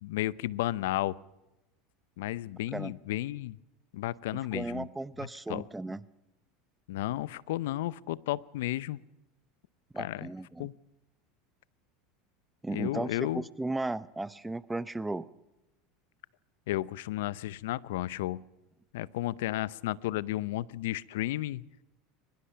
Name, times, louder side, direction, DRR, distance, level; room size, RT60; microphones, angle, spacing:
voice 1, 0.0-1.2 2.2-3.6 3.9-4.9 5.5-5.6 6.9-9.0 10.0-10.3 10.6-10.7 12.7-13.4 16.7-18.4 18.9-21.6, left 15 dB, 75° left, 20 dB, 0.6 m, -33 dB
voice 2, 4.5-6.0 9.9-10.7 12.6-15.3, right 2 dB, 10° right, 17 dB, 0.7 m, -35 dB
23.0 x 21.0 x 5.7 m, 0.97 s
hypercardioid pair, 95°, 0 cm